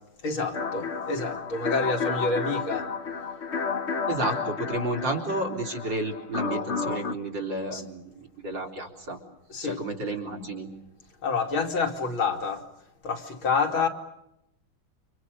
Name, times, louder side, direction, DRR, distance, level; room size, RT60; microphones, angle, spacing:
voice 1, 0.2-2.9 7.7-7.8 9.5-9.8 11.2-12.6 13.0-13.9, left 4 dB, 80° left, 3.7 m, -28 dB
sound 1, 0.5-7.1, left 5 dB, 40° left, 1.2 m, -31 dB
voice 2, 4.1-9.2 9.6-10.7, right 2 dB, 60° right, 4.5 m, -31 dB
29.0 x 27.0 x 6.7 m
omnidirectional pair, 2.2 m